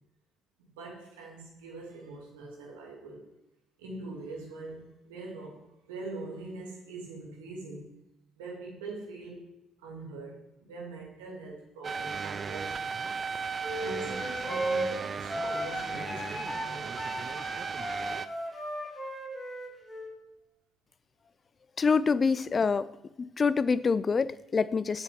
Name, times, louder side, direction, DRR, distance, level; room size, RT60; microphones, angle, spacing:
voice 1, 0.6-3.3 3.8-7.9 8.4-9.5 9.8-12.9 13.8-17.1, right 2 dB, 80° right, -1 dB, 2.5 m, -43 dB
sound 1, 11.8-18.3, right 5 dB, 40° right, 0.5 m, -36 dB
sound 2, 13.6-20.1, right 1 dB, 15° left, 3.7 m, -35 dB
voice 2, 21.8-22.9 23.2-25.0, left 5 dB, 40° left, 17 dB, 0.5 m, -26 dB
7.6 x 7.5 x 5.3 m, 0.93 s
hypercardioid pair, 50°, 0 cm